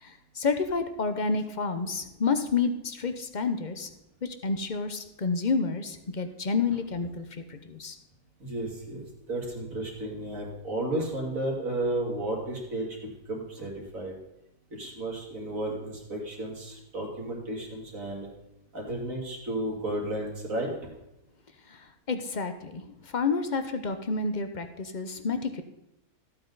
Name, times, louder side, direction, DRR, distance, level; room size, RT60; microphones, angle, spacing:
voice 1, 0.0-3.9 4.2-8.0 21.7-21.8 22.1-25.6, left 4 dB, 40° left, 8 dB, 0.7 m, -29 dB
voice 2, 8.4-14.1 14.7-18.3 18.7-20.7, right 1 dB, 55° right, -1 dB, 2.8 m, -33 dB
14.0 x 8.7 x 3.9 m, 0.91 s
omnidirectional pair, 1.7 m